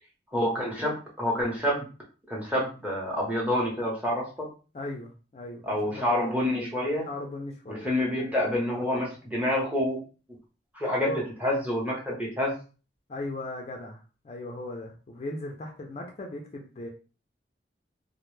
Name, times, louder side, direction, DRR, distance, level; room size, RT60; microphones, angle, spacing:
voice 1, 0.3-1.9 2.3-4.5 5.6-7.1 7.7-10.0 10.7-11.1 11.4-12.5, left 1 dB, 10° right, -3 dB, 0.7 m, -27 dB
voice 2, 4.7-6.5 7.0-7.9 10.9-11.3 13.1-16.9, left 2 dB, 35° left, 1 dB, 0.4 m, -38 dB
2.1 x 2.0 x 3.0 m, 0.35 s
head